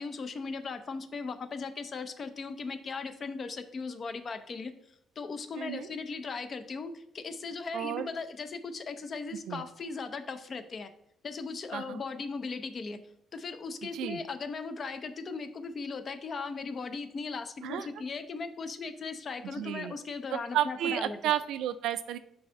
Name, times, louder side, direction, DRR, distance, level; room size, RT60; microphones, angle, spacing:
voice 1, 0.0-4.7 5.2-10.9 11.2-13.0 13.3-21.3, left 4 dB, 45° left, 10 dB, 0.6 m, -38 dB
voice 2, 5.6-5.9 7.7-8.1 9.5-9.6 11.7-12.0 13.9-14.2 17.6-17.9 19.4-20.0 20.3-22.2, right 11 dB, 85° right, 12 dB, 0.4 m, -32 dB
5.5 x 3.3 x 5.5 m, 0.75 s
cardioid pair, 90°, 0 cm